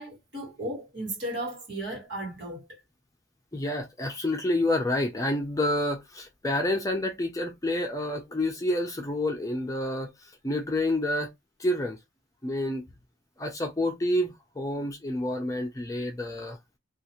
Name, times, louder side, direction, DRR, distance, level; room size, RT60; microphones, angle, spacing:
voice 1, 0.0-2.8, right 1 dB, 55° right, 1.6 m, -35 dB
voice 2, 3.5-11.3 11.6-12.0 12.4-12.8 13.4-16.6, left 1 dB, 15° left, 0.4 m, -28 dB
2.6 x 2.4 x 2.9 m
head